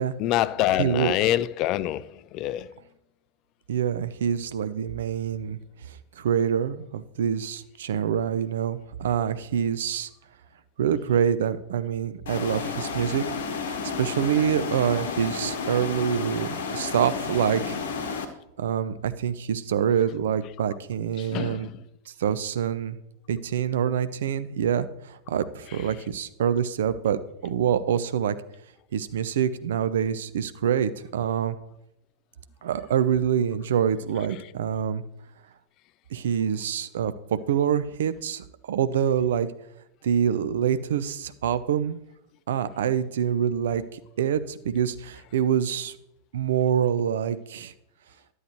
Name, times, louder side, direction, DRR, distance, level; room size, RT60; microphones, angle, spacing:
voice 1, 0.2-2.7 21.2-21.7, left 13 dB, 40° left, 0.3 m, -26 dB
voice 2, 0.8-1.1 3.7-5.6 5.9-10.1 10.8-13.2 13.7-17.8 18.6-21.7 22.2-23.0 23.3-28.4 28.9-31.6 32.6-35.0 36.1-39.5 40.0-42.0 42.5-45.9 46.3-47.7, right 8 dB, 60° right, 0.5 m, -26 dB
sound 1, 12.3-18.3, left 5 dB, 60° left, 0.9 m, -31 dB
11.0 x 8.0 x 3.1 m
figure-of-eight pair, 90°, 0 cm